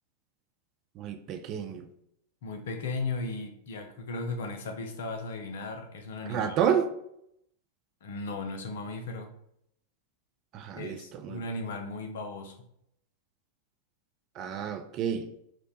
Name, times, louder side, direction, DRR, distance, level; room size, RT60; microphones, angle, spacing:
voice 1, 1.0-1.9 6.3-6.9 10.5-11.4 14.4-15.3, right 8 dB, 35° right, 0.3 m, -30 dB
voice 2, 2.4-6.7 8.0-9.3 10.8-12.6, left 3 dB, 60° left, 0.5 m, -36 dB
2.7 x 2.1 x 4.0 m
figure-of-eight pair, 90°, 0 cm